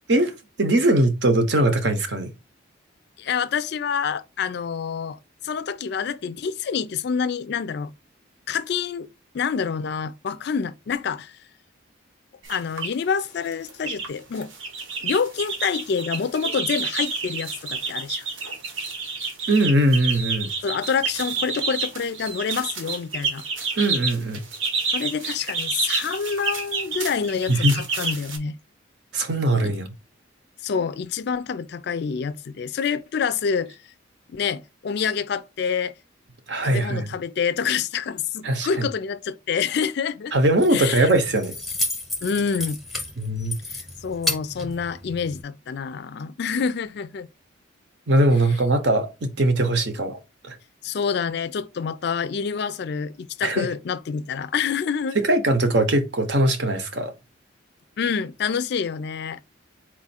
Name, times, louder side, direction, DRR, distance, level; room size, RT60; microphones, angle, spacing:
voice 1, 0.6-2.3 19.5-20.5 23.8-24.4 27.5-27.7 29.1-29.9 36.5-37.1 38.4-38.9 40.3-41.5 43.2-43.6 48.1-50.2 50.4-50.6 53.4-53.7 55.2-57.1, right 1 dB, 60° right, 0.8 m, -21 dB
voice 2, 3.2-5.2 5.4-7.9 8.5-9.1 9.3-11.4 12.5-14.5 15.0-18.3 20.6-23.4 24.9-28.5 29.6-29.7 30.6-33.8 34.3-35.9 36.6-40.3 40.7-41.1 42.2-42.8 43.7-47.3 50.8-55.2 58.0-59.4, left 6 dB, 55° left, 0.3 m, -27 dB
sound 1, 12.4-12.9 13.5-14.1 14.4-28.4, right 4 dB, 80° right, 1.0 m, -29 dB
Keys jangling, 40.4-45.4, left 2 dB, ahead, 0.8 m, -32 dB
4.3 x 2.4 x 4.1 m
head